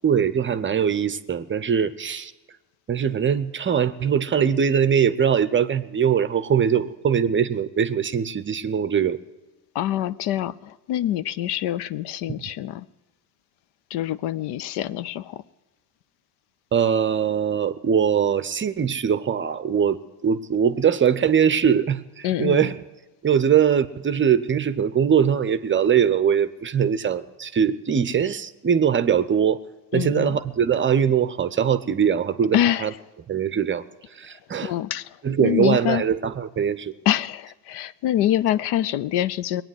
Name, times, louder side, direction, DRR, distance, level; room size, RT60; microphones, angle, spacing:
voice 1, 0.0-2.3 2.9-9.2 16.7-20.0 20.2-22.8 23.2-29.6 29.9-32.9 33.3-33.8 34.1-34.7 35.2-36.9, right 8 dB, 25° right, 14 dB, 0.7 m, -21 dB
voice 2, 9.7-12.8 13.9-15.4 22.2-22.7 29.9-30.4 32.5-32.9 34.6-35.1 35.4-36.0 37.1-39.6, left 12 dB, 55° left, 17 dB, 0.6 m, -25 dB
20.0 x 9.0 x 7.7 m, 1.2 s
hypercardioid pair, 80°, 48 cm